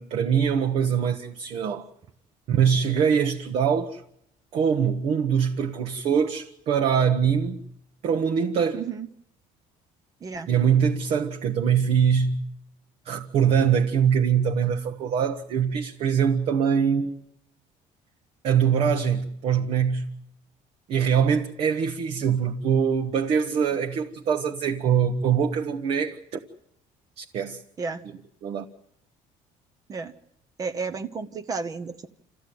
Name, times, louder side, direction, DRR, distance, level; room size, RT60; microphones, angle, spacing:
voice 1, 0.0-1.9 2.5-4.0 4.5-7.7 8.0-8.8 10.5-12.4 13.0-17.2 18.4-20.1 20.9-26.4 27.2-27.6 28.4-28.6, right 7 dB, 50° right, 1.2 m, -23 dB
voice 2, 8.7-9.1 10.2-10.5 27.8-28.0 29.9-30.1 30.6-32.1, right 4 dB, 25° right, 0.8 m, -32 dB
28.0 x 15.0 x 9.4 m
cardioid pair, 170°, 14 cm